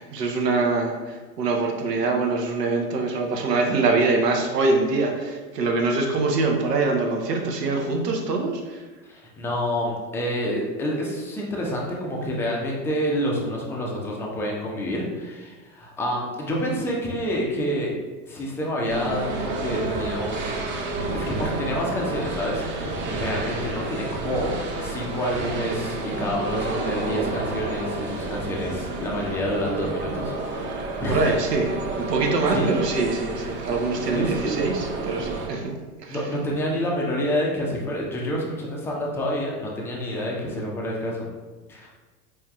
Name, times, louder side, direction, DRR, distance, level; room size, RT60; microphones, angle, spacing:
voice 1, 0.0-8.8 16.5-16.7 31.1-35.7 36.0-36.2, right 3 dB, 85° right, 2 dB, 0.7 m, -24 dB
voice 2, 9.1-17.9 18.3-20.5 21.1-31.3 32.5-32.7 34.1-34.6 36.1-41.3 41.7-41.9, equal, 5° left, -3 dB, 0.3 m, -28 dB
sound 1, 18.9-35.5, right 2 dB, 25° right, 0.6 m, -30 dB
4.4 x 3.1 x 2.3 m, 1.3 s
figure-of-eight pair, 85°, 47 cm